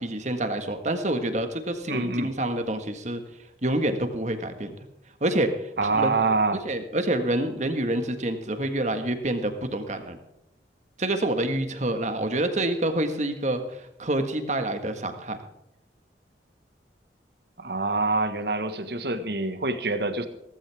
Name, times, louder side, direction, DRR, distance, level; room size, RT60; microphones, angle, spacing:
voice 1, 0.0-3.2 3.6-4.7 5.2-6.1 6.7-10.2 11.0-15.4, right 1 dB, 40° right, 7 dB, 1.7 m, -27 dB
voice 2, 1.9-2.3 5.8-6.6 17.6-20.3, right 3 dB, 65° right, 9 dB, 1.5 m, -26 dB
16.5 x 15.0 x 3.6 m, 0.86 s
head